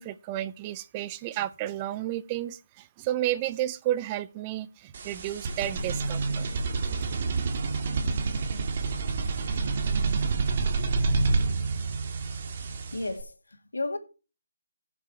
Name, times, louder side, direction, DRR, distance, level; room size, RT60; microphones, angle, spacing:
voice 1, 0.0-6.5, right 13 dB, 20° right, 0.5 m, -32 dB
sound 1, 4.9-13.2, right 4 dB, 40° right, 1.9 m, -28 dB
voice 2, 12.9-14.0, left 2 dB, 85° left, 2.4 m, -33 dB
16.5 x 7.1 x 3.2 m
figure-of-eight pair, 160°, 0 cm